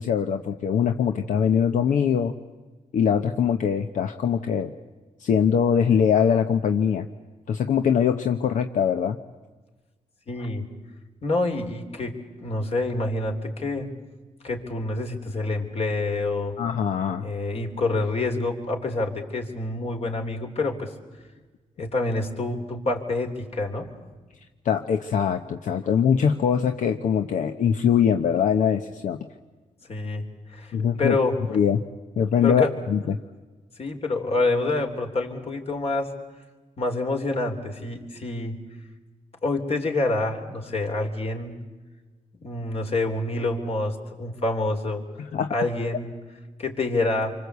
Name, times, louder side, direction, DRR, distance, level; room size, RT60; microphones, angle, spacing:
voice 1, 0.0-2.3 2.9-4.7 5.2-7.1 7.5-9.2 16.6-17.2 24.6-29.2 30.7-31.2 31.5-31.8 32.2-33.2 45.2-45.5, left 7 dB, 80° left, 7 dB, 1.0 m, -22 dB
voice 2, 10.3-10.7 11.2-13.9 14.4-16.5 17.2-20.9 21.8-23.9 29.9-30.2 30.5-31.4 32.4-32.7 33.8-36.1 36.8-38.6 39.4-41.5 42.4-45.0 45.5-46.1 46.6-47.3, left 2 dB, 55° left, 4 dB, 3.6 m, -27 dB
27.0 x 24.5 x 8.2 m, 1.3 s
cardioid pair, 85°, 13 cm